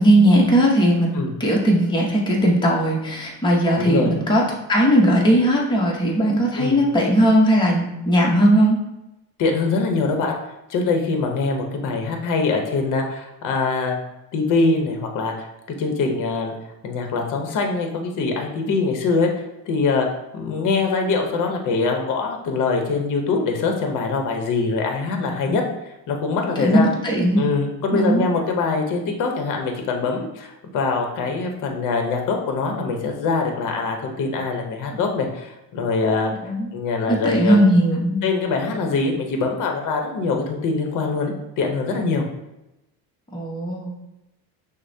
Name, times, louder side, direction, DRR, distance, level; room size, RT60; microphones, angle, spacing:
voice 1, 0.0-4.4 4.7-8.8 25.1-25.6 26.6-27.5 27.9-28.3 34.9-35.0 36.4-36.7 37.1-38.2 43.3-43.9, equal, 10° left, -3 dB, 0.8 m, -18 dB
voice 2, 3.8-4.1 6.6-6.8 9.4-10.4 10.7-14.0 14.3-15.5 15.8-16.5 16.8-19.3 19.7-20.1 20.3-26.9 27.4-37.7 38.2-42.2, left 4 dB, 50° left, 3 dB, 0.8 m, -23 dB
6.2 x 2.1 x 2.7 m, 0.94 s
supercardioid pair, 100°, 41 cm